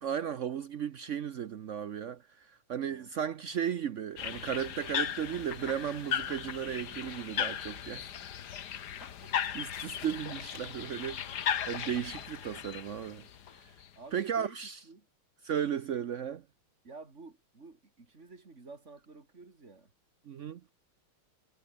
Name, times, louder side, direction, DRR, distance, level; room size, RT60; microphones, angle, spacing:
voice 1, 0.0-8.1 9.5-13.3 14.1-14.8 15.4-16.4 20.3-20.6, right 8 dB, 85° right, 0.6 m, -35 dB
sound 1, 4.2-13.9, left 9 dB, 55° left, 1.6 m, -37 dB
voice 2, 9.0-9.3 13.9-14.6 14.8-15.1 16.8-19.9, right 3 dB, 30° right, 3.3 m, -51 dB
omnidirectional pair, 2.4 m